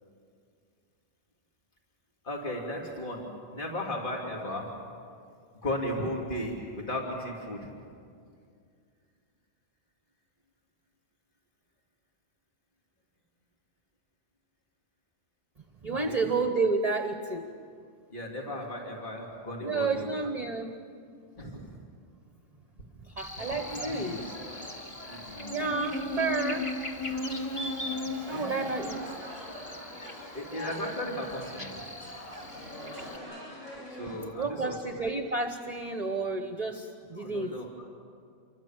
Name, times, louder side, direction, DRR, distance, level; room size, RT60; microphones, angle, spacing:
voice 1, 2.2-4.7 5.6-7.7 15.9-16.2 18.1-20.1 21.4-21.7 23.7-24.3 25.1-25.8 28.3-28.9 30.3-31.8 33.9-35.0 37.2-37.8, left 1 dB, 40° left, -1 dB, 3.1 m, -36 dB
voice 2, 15.8-17.4 19.6-20.8 23.0-24.2 25.5-26.7 28.3-29.0 34.4-37.6, right 3 dB, 35° right, 6 dB, 1.1 m, -30 dB
Buzz, 23.2-33.2, left 2 dB, 25° left, 1.9 m, -38 dB
sound 1, 23.4-34.2, left 1 dB, 90° left, 7.9 m, -44 dB
28.0 x 24.0 x 7.4 m, 2.3 s
omnidirectional pair, 1.3 m